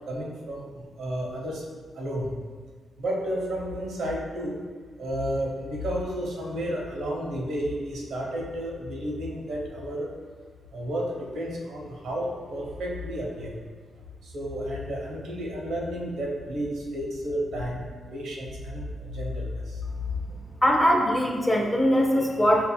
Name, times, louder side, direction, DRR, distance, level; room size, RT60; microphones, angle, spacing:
voice 1, 0.0-1.6 2.0-2.3 3.0-4.6 5.0-10.1 10.7-13.6 14.2-19.8, equal, 80° right, -2 dB, 0.9 m, -32 dB
voice 2, 20.6-22.7, equal, 5° left, 0 dB, 0.5 m, -21 dB
7.0 x 2.6 x 2.2 m, 1.5 s
wide cardioid pair, 165°, 0 cm